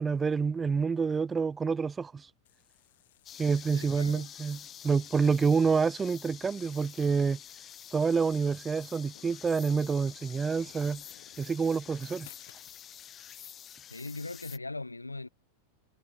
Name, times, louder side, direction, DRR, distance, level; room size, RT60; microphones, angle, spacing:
voice 1, 0.0-2.3 3.4-7.4 7.9-11.0 11.4-12.3, right 5 dB, 15° right, 0.4 m, -28 dB
sound 1, 2.4-12.8, left 15 dB, 55° left, 4.7 m, -60 dB
sound 2, 3.2-14.6, left 10 dB, 25° left, 2.2 m, -48 dB
voice 2, 3.7-4.3 13.9-15.3, left 2 dB, 80° left, 0.8 m, -40 dB
figure-of-eight pair, 90°, 0 cm